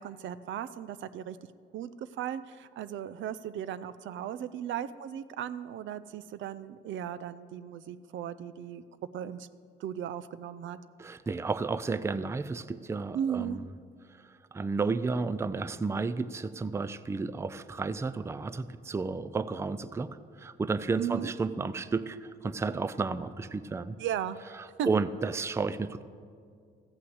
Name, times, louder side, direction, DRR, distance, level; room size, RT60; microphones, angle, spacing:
voice 1, 0.0-1.4 1.7-8.8 9.1-9.5 9.8-10.8 13.1-13.6 21.0-21.3 24.0-24.5 24.8-24.9, right 9 dB, 75° right, 15 dB, 0.5 m, -36 dB
voice 2, 11.0-13.7 14.5-20.1 20.4-24.0 24.6-26.0, right 4 dB, 15° right, 15 dB, 0.4 m, -32 dB
14.5 x 5.8 x 7.9 m, 2.2 s
cardioid pair, 90°, 20 cm